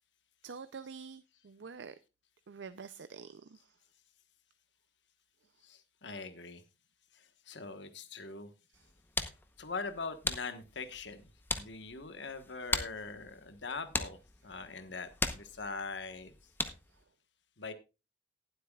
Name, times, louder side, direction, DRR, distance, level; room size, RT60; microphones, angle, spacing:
voice 1, 0.4-2.0 2.5-3.7 8.7-8.9, right 5 dB, 90° right, 0.5 m, -47 dB
voice 2, 5.6-6.6 7.2-8.5 9.6-11.2 11.5-16.3 17.6-17.7, left 4 dB, 90° left, 1.3 m, -42 dB
sound 1, 8.7-17.0, left 3 dB, 10° left, 0.9 m, -40 dB
19.0 x 7.9 x 2.4 m
head